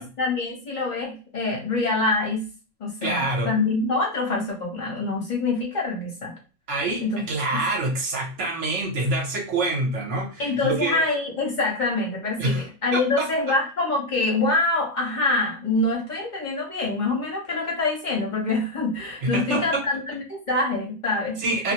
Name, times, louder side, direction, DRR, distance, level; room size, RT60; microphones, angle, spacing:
voice 1, 0.0-2.4 2.8-6.3 7.0-7.2 10.4-21.4, left 3 dB, 35° left, -2 dB, 0.8 m, -25 dB
voice 2, 3.0-3.5 6.7-11.0 12.4-12.7 12.9-13.3 19.2-19.8 21.4-21.7, right 2 dB, 55° right, 1 dB, 1.0 m, -26 dB
2.6 x 2.1 x 2.8 m, 0.33 s
omnidirectional pair, 1.7 m